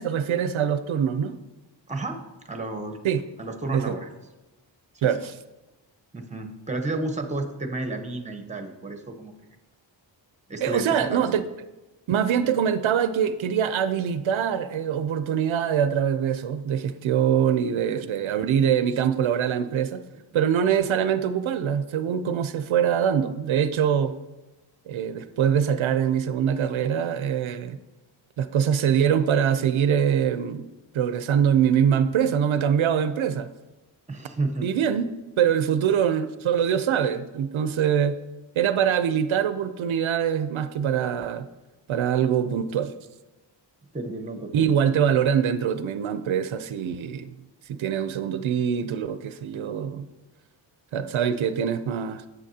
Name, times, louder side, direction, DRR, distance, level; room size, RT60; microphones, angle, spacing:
voice 1, 0.0-1.4 3.0-3.2 3.7-3.8 5.0-5.4 10.6-11.4 12.1-20.0 20.3-24.1 24.9-27.8 28.4-30.6 30.9-33.5 34.6-35.1 35.4-38.2 38.6-41.5 41.9-42.9 44.5-47.3 47.7-50.1 50.9-52.3, right 8 dB, 85° right, 11 dB, 0.6 m, -23 dB
voice 2, 1.9-3.0 3.4-4.1 4.9-5.1 6.1-9.3 10.5-11.3 34.1-34.8 43.9-44.8, right 2 dB, 15° right, 5 dB, 0.9 m, -32 dB
9.0 x 7.8 x 2.7 m, 1.1 s
wide cardioid pair, 90°, 46 cm